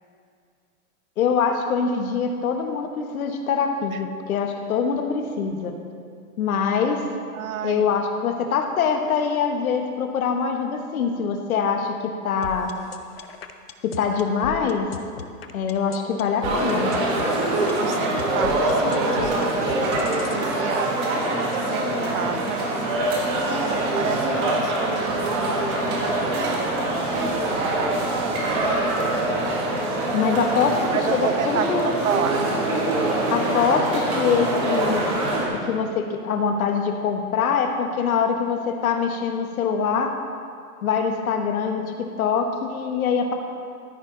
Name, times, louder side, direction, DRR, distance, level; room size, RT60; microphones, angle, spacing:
voice 1, 1.2-5.7 6.4-7.0 7.6-12.7 13.8-14.9 15.5-16.9 30.1-31.9 33.3-35.1 35.6-40.1 40.8-43.3, left 6 dB, 65° left, 4 dB, 1.4 m, -24 dB
voice 2, 7.3-7.8 17.8-20.9 21.5-22.7 23.6-26.6 27.1-28.3 30.9-32.4, right 9 dB, 60° right, 9 dB, 0.9 m, -31 dB
sound 1, 12.4-20.4, left 9 dB, 40° left, 0.5 m, -37 dB
sound 2, 16.4-35.5, right 1 dB, 20° right, 1.5 m, -24 dB
14.5 x 9.0 x 3.9 m, 2.3 s
supercardioid pair, 175°, 46 cm